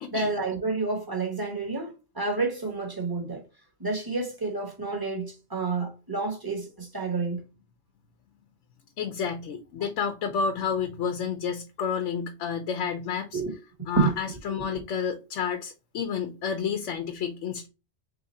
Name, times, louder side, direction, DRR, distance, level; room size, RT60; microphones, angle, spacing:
voice 1, 0.1-3.4 3.8-7.4 13.3-13.5 14.0-14.1 14.5-14.6, right 3 dB, 20° right, 1.1 m, -29 dB
voice 2, 9.0-13.4 13.9-17.7, left 6 dB, 85° left, 1.0 m, -30 dB
3.6 x 3.1 x 4.1 m
omnidirectional pair, 1.2 m